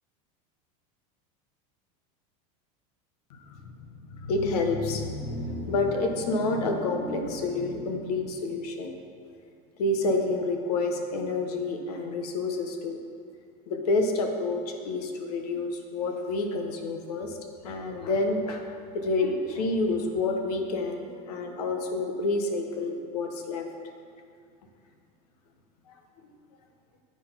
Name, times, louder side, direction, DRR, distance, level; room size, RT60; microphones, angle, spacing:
voice 1, 3.3-3.7 4.1-9.0 9.8-13.0 13.7-17.4 17.6-23.6, left 2 dB, 90° left, 4 dB, 1.0 m, -29 dB
8.6 x 4.0 x 5.6 m, 2.3 s
supercardioid pair, 155°, 19 cm